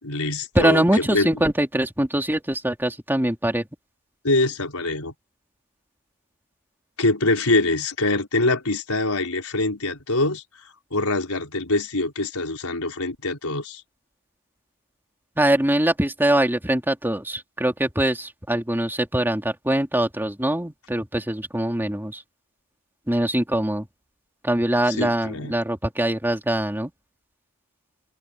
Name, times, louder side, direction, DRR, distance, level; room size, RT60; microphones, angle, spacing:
voice 1, 0.0-1.3 4.2-5.1 7.0-10.4 10.9-13.8 25.0-25.5, left 2 dB, 75° left, 5.2 m, -24 dB
voice 2, 0.5-3.7 15.4-22.2 23.1-23.9 24.4-26.9, right 1 dB, 10° right, 2.5 m, -23 dB
head